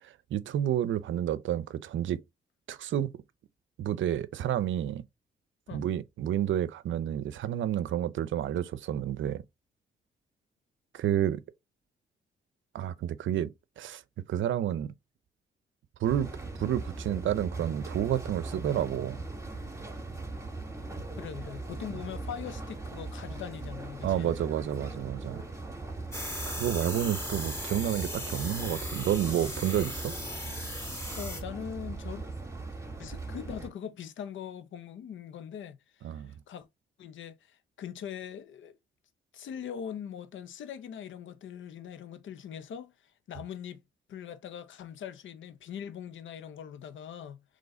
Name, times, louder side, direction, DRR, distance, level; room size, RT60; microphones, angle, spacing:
voice 1, 0.0-2.2 2.7-3.1 3.8-5.0 5.7-9.4 10.9-11.4 12.7-13.5 13.8-14.0 14.3-14.9 16.0-16.3 16.6-19.2 24.0-25.4 26.5-30.1 36.0-36.3, right 11 dB, 75° right, 0.5 m, -30 dB
sound 1, 16.0-33.7, right 3 dB, 15° right, 1.8 m, -40 dB
voice 2, 21.2-24.5 31.2-32.3 33.0-36.7 37.0-38.8 39.3-43.8 44.1-47.4, left 8 dB, 75° left, 0.7 m, -41 dB
sound 2, 26.1-31.4, left 1 dB, 15° left, 2.2 m, -38 dB
4.0 x 3.1 x 3.8 m
cardioid pair, 70°, 20 cm